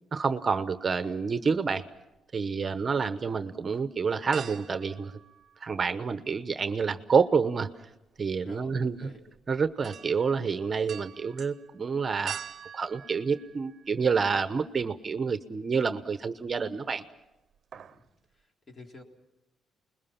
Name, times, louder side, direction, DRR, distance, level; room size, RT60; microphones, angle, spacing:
voice 1, 0.1-1.9 2.3-5.1 5.6-7.7 8.2-9.0 9.5-12.4 12.7-17.0, right 5 dB, 35° right, 11 dB, 1.0 m, -28 dB
sound 1, 1.9-2.7 3.1-3.2 4.3-6.0 6.3-14.2 14.6-14.7 16.2-16.8 17.1-17.3 17.5-18.1 18.4-18.5, right 8 dB, 60° right, 0.8 m, -45 dB
voice 2, 8.4-9.2 17.7-18.0 18.3-19.0, left 1 dB, 35° left, 2 dB, 3.9 m, -50 dB
29.0 x 21.5 x 5.9 m, 0.96 s
cardioid pair, 90°, 0 cm